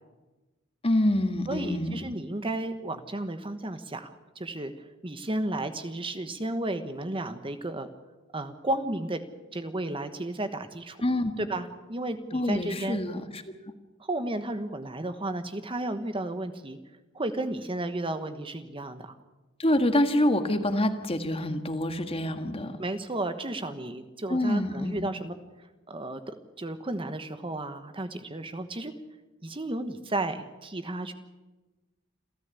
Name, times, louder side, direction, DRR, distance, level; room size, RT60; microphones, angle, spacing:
voice 1, 0.8-2.0 11.0-11.5 12.3-13.4 19.6-22.8 24.3-25.1, left 1 dB, 30° left, 8 dB, 1.7 m, -26 dB
voice 2, 1.5-7.9 8.3-9.2 9.5-11.0 11.4-13.0 14.0-16.8 17.1-19.1 22.8-25.3 25.9-28.9 29.4-31.1, right 1 dB, 25° right, 9 dB, 1.2 m, -33 dB
28.0 x 13.5 x 8.4 m, 1.1 s
head